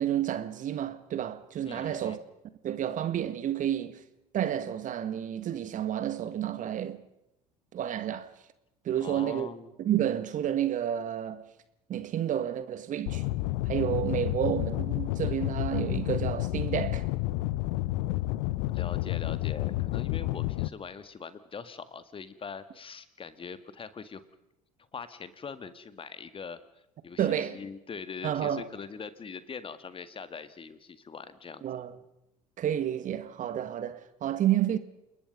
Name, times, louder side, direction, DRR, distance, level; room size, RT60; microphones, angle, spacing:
voice 1, 0.0-2.2 2.6-4.0 4.3-7.0 7.7-8.3 8.8-9.5 9.8-11.5 11.9-13.3 13.6-17.1 27.2-27.6 28.2-28.7 31.6-32.0 32.6-34.8, right 10 dB, 45° right, 1.8 m, -30 dB
voice 2, 1.7-2.2 9.0-9.7 18.7-24.2 24.9-26.6 27.0-31.6, left 5 dB, 30° left, 1.7 m, -42 dB
sound 1, 13.1-20.7, left 18 dB, 65° left, 0.9 m, -30 dB
29.0 x 21.0 x 5.4 m
hypercardioid pair, 65°, 18 cm